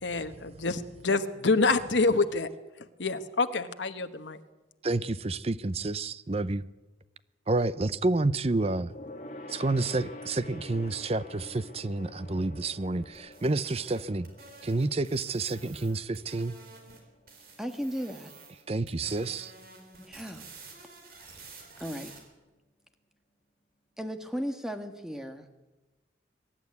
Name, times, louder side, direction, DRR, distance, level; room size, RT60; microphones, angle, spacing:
voice 1, 0.0-2.5 3.0-4.4, left 3 dB, 75° left, 1.2 m, -27 dB
voice 2, 4.8-6.6 7.5-8.9 9.5-14.3 14.6-16.6 18.7-19.5, right 2 dB, 35° right, 0.6 m, -29 dB
Gong, 8.9-18.7 19.0-19.2 19.5-19.6, left 1 dB, 40° left, 2.4 m, -48 dB
sound 1, 13.1-17.0 17.3-18.6 18.9-22.2, right 3 dB, 50° right, 4.2 m, -50 dB
voice 3, 17.6-18.3 20.1-20.4 21.8-22.1 24.0-25.6, equal, 5° right, 1.4 m, -35 dB
23.0 x 11.5 x 9.6 m
head